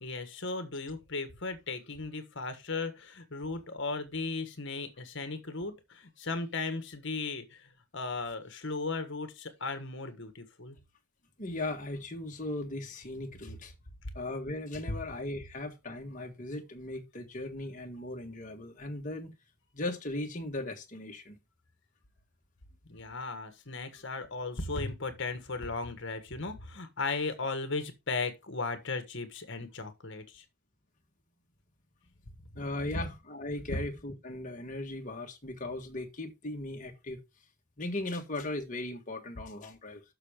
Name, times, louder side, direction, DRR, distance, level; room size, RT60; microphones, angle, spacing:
voice 1, 0.0-10.8 22.9-30.4 33.7-33.8, left 3 dB, 55° left, 1.5 m, -36 dB
voice 2, 11.4-13.7 14.1-19.3 19.7-21.4 32.5-37.2 37.8-40.0, left 2 dB, 35° left, 1.5 m, -38 dB
6.6 x 6.5 x 5.0 m
head